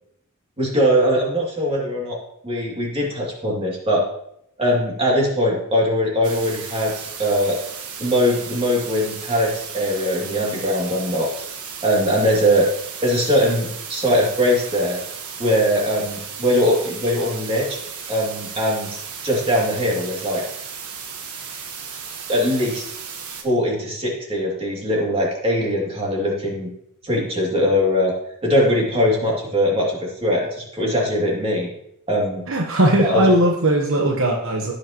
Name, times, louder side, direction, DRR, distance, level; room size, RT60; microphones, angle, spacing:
voice 1, 0.6-2.2 2.4-4.0 4.6-7.6 8.0-11.3 11.8-12.7 13.0-15.0 15.4-17.8 18.1-20.4 22.3-22.8 23.4-26.7 27.0-28.1 28.4-31.7 32.1-32.4 33.0-33.2, equal, 25° right, -3 dB, 2.6 m, -21 dB
sound 1, 6.2-23.4, right 6 dB, 85° right, 1.4 m, -35 dB
voice 2, 32.5-34.7, right 1 dB, 65° right, 1 dB, 1.1 m, -18 dB
16.5 x 6.5 x 3.0 m, 0.76 s
head